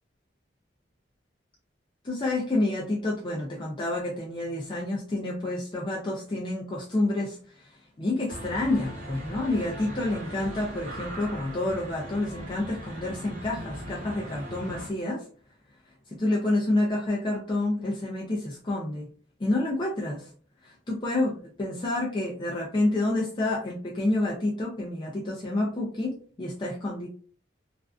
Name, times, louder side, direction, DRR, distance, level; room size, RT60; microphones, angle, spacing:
voice 1, 2.0-15.3 16.1-19.1 19.4-20.3 20.6-27.1, left 2 dB, 25° left, -3 dB, 0.4 m, -29 dB
sound 1, 8.3-14.9, equal, 45° right, 0.8 m, -39 dB
2.4 x 2.2 x 2.3 m, 0.43 s
head